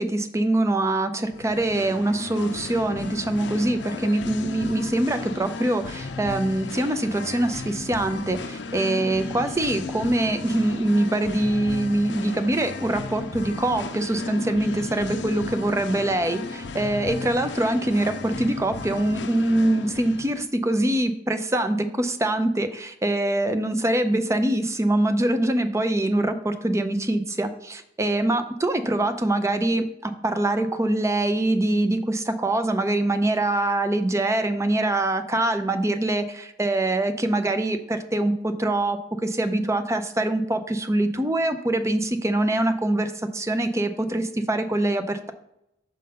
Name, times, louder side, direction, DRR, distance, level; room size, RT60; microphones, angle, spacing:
voice 1, 0.0-45.3, right 1 dB, 15° right, 8 dB, 0.5 m, -24 dB
Singing, 1.3-20.4, left 3 dB, 65° left, 0.5 m, -35 dB
6.6 x 3.8 x 5.2 m, 0.80 s
head